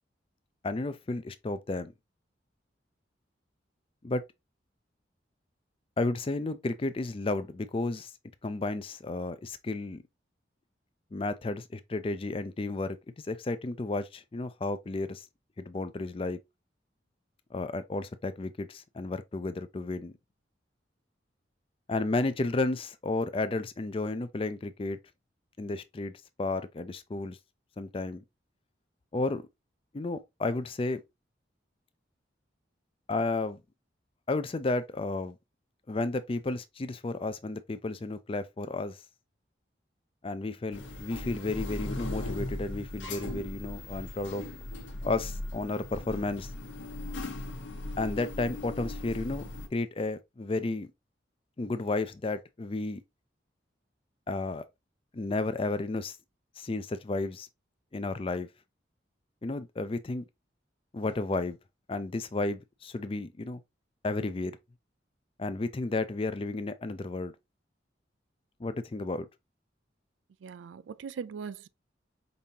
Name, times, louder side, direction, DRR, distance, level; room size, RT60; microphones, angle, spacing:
voice 1, 0.6-1.9 4.0-4.2 6.0-8.1 8.4-10.0 11.1-13.0 13.3-15.3 15.6-16.4 17.5-20.1 21.9-25.0 25.6-26.1 26.4-27.4 27.8-28.2 29.1-29.5 29.9-31.0 33.1-33.6 34.3-35.4 35.9-39.0 40.2-44.4 45.0-46.5 48.0-49.5 49.7-50.9 51.6-53.0 54.3-54.6 55.1-56.2 56.6-57.5 57.9-58.5 59.4-60.2 60.9-61.6 61.9-63.6 64.0-64.6 65.4-67.3 68.6-69.3, left 2 dB, 30° left, 0.4 m, -32 dB
sound 1, 40.7-49.7, left 2 dB, 85° left, 1.0 m, -38 dB
voice 2, 70.4-71.7, right 6 dB, 85° right, 0.3 m, -40 dB
5.2 x 2.8 x 2.8 m
head